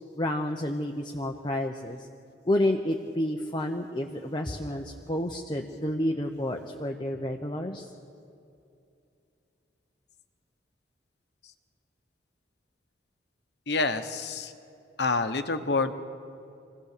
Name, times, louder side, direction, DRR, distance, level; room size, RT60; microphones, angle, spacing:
voice 1, 0.1-2.1 2.5-7.9, left 1 dB, 25° left, 3 dB, 0.9 m, -30 dB
voice 2, 13.7-14.5 15.0-15.9, left 3 dB, 65° left, 9 dB, 1.1 m, -27 dB
25.5 x 17.0 x 6.7 m, 2.6 s
head